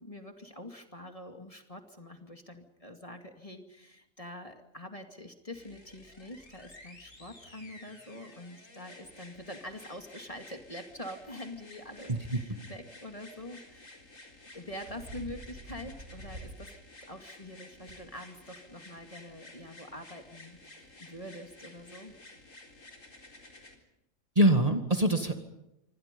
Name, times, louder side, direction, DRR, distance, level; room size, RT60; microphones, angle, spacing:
voice 1, 0.0-14.0 14.5-16.7 17.0-22.2, left 1 dB, 25° left, 5 dB, 2.5 m, -45 dB
sound 1, 5.5-23.8 24.7-24.8, left 2 dB, 70° left, 4.4 m, -53 dB
sound 2, 12.0-12.2 14.2-16.6 17.0-17.1 17.9-18.0, right 1 dB, 80° right, 7.1 m, -46 dB
voice 2, 12.1-12.6 24.4-25.4, right 1 dB, 25° right, 6 dB, 2.1 m, -25 dB
26.5 x 25.0 x 5.4 m, 0.86 s
omnidirectional pair, 1.4 m